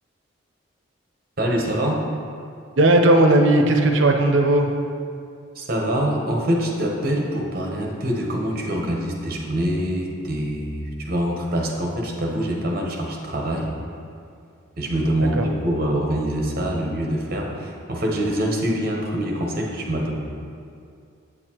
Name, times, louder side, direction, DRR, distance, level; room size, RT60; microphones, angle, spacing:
voice 1, 1.4-2.0 5.5-13.7 14.8-20.1, right 1 dB, 45° right, -1 dB, 1.0 m, -25 dB
voice 2, 2.8-4.7 15.4-15.5, right 1 dB, 70° right, 4 dB, 0.6 m, -16 dB
8.1 x 6.6 x 3.0 m, 2.4 s
head